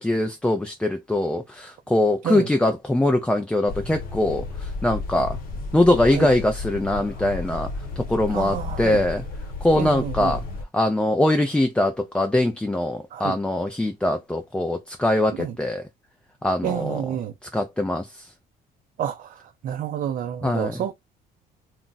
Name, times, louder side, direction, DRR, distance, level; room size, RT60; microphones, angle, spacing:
voice 1, 0.0-5.4 5.7-7.7 8.0-9.2 9.6-10.4 10.7-15.8 16.4-17.0 17.5-18.3 20.4-20.8, left 1 dB, 5° left, 0.4 m, -22 dB
sound 1, 3.7-10.6, left 3 dB, 60° left, 1.0 m, -33 dB
voice 2, 8.3-9.0 9.7-10.4 13.1-13.4 15.4-15.6 16.6-17.3 19.0-20.9, right 10 dB, 55° right, 0.5 m, -29 dB
2.4 x 2.1 x 3.9 m
cardioid pair, 110°, 17 cm